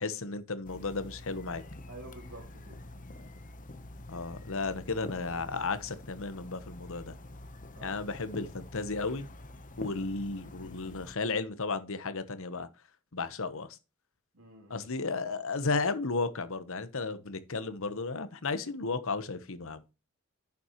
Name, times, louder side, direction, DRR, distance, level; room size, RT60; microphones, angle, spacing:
voice 1, 0.0-1.6 4.1-7.1 7.8-9.3 9.8-12.7 13.1-13.7 14.7-19.8, left 3 dB, 65° left, 1.1 m, -34 dB
sound 1, 0.6-11.1, left 1 dB, 35° left, 1.0 m, -47 dB
voice 2, 1.9-2.8 7.7-8.0 14.3-14.9, right 2 dB, 85° right, 3.1 m, -49 dB
10.5 x 7.2 x 3.1 m
head